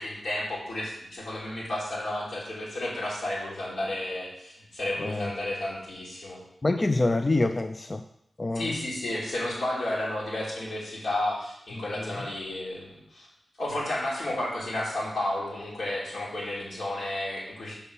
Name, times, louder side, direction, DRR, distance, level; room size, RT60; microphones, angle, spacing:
voice 1, 0.0-6.4 8.6-13.3 13.6-17.7, left 1 dB, 80° left, -6 dB, 3.4 m, -32 dB
voice 2, 5.0-5.3 6.6-8.0 8.4-8.8 11.8-12.3, left 2 dB, 30° left, 7 dB, 0.4 m, -27 dB
6.7 x 5.4 x 6.8 m, 0.77 s
wide cardioid pair, 120°, 0 cm